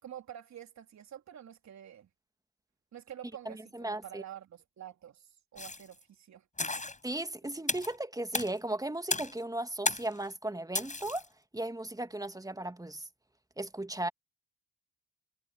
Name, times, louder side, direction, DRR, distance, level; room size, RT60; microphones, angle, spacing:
voice 1, 0.0-2.1 2.9-6.7, right 10 dB, 55° right, 3.5 m, -48 dB
voice 2, 3.5-4.2 7.0-11.2 11.5-13.1 13.6-14.1, right 1 dB, 10° right, 2.0 m, -36 dB
sound 1, 5.6-5.9 6.6-7.0 7.7-8.0 8.3-8.5 9.1-9.4 9.9-10.2 10.8-11.3, left 3 dB, 20° left, 4.6 m, -33 dB
hypercardioid pair, 45°, 34 cm